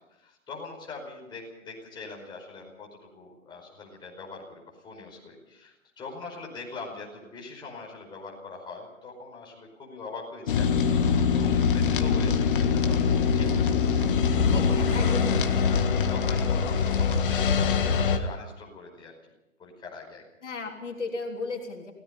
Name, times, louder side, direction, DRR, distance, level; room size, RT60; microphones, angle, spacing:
voice 1, 0.2-13.7 14.5-15.5 16.1-19.1 19.6-20.2, left 3 dB, 10° left, -2 dB, 5.1 m, -42 dB
sound 1, 10.5-18.2, left 6 dB, 40° left, 1.8 m, -23 dB
voice 2, 14.5-16.0 20.4-21.9, left 3 dB, 65° left, 2 dB, 3.6 m, -36 dB
28.0 x 17.0 x 5.5 m, 0.94 s
figure-of-eight pair, 125°, 39 cm